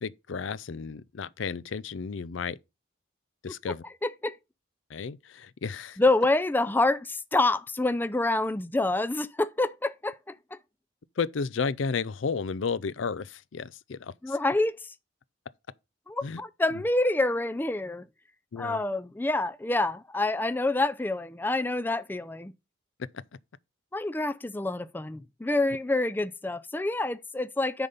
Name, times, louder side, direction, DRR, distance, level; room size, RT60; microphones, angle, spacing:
voice 1, 0.0-2.6 3.4-3.8 4.9-6.0 11.2-14.3 16.2-16.4 18.5-18.8 23.0-23.2, left 5 dB, 75° left, 0.5 m, -33 dB
voice 2, 4.0-4.4 6.0-10.6 14.2-14.9 16.1-18.0 18.6-22.5 23.9-27.9, left 2 dB, 10° left, 0.4 m, -27 dB
9.8 x 4.0 x 5.3 m
head